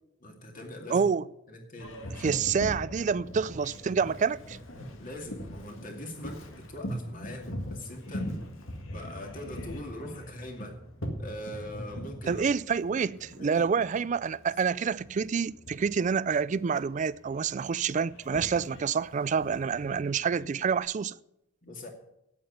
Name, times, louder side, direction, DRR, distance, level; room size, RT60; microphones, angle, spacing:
voice 1, 0.2-1.1 1.5-2.3 5.0-6.4 6.7-8.4 8.9-10.8 11.2-12.4 13.4-13.6 21.6-21.9, left 1 dB, 45° left, 2.4 m, -42 dB
voice 2, 0.9-1.2 2.2-4.6 12.3-21.1, right 6 dB, 40° right, 0.3 m, -28 dB
Boat Water vehicle, 1.8-20.8, equal, 85° left, 1.8 m, -41 dB
8.7 x 8.6 x 9.3 m
head